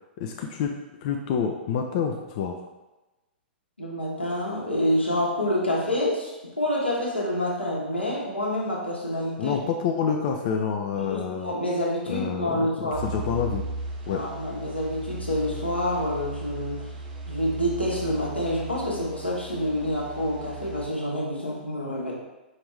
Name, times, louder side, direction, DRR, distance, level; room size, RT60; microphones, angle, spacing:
voice 1, 0.2-2.5 9.4-11.5 12.1-13.6 14.1-14.2, left 7 dB, 40° left, 3 dB, 0.3 m, -28 dB
voice 2, 3.8-9.6 10.9-13.0 14.1-16.9 17.3-22.1, left 1 dB, 90° left, -4 dB, 1.1 m, -27 dB
sound 1, 12.9-20.9, right 2 dB, 50° right, 0.7 m, -37 dB
5.1 x 2.6 x 3.1 m, 1.1 s
figure-of-eight pair, 105°, 6 cm